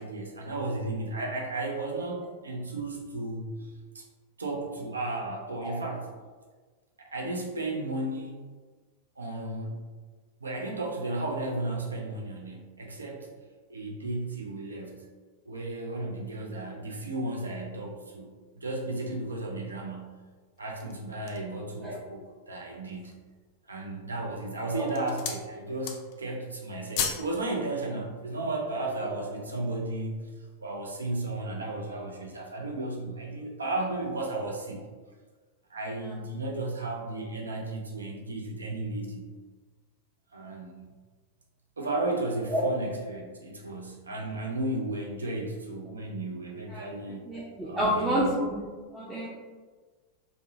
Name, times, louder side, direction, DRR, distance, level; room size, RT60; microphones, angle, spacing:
voice 1, 0.0-3.7 3.9-4.0 4.4-6.1 7.0-8.4 9.2-9.8 10.4-13.3 13.7-15.1 15.5-20.1 20.6-23.2 23.7-30.3 30.6-34.8 35.7-39.3 40.3-40.9 41.8-47.2 47.6-48.4, right 2 dB, 75° right, 0 dB, 0.4 m, -34 dB
sound 1, 20.6-21.6 22.2-22.3 22.7-23.3 24.0-24.4 24.7-25.5 25.7-26.3 26.5-27.3 27.6-27.8, left 7 dB, 45° left, 0.3 m, -35 dB
voice 2, 47.3-48.6 48.9-49.3, equal, 10° right, -8 dB, 0.5 m, -29 dB
2.6 x 2.0 x 2.6 m, 1.4 s
figure-of-eight pair, 90°, 0 cm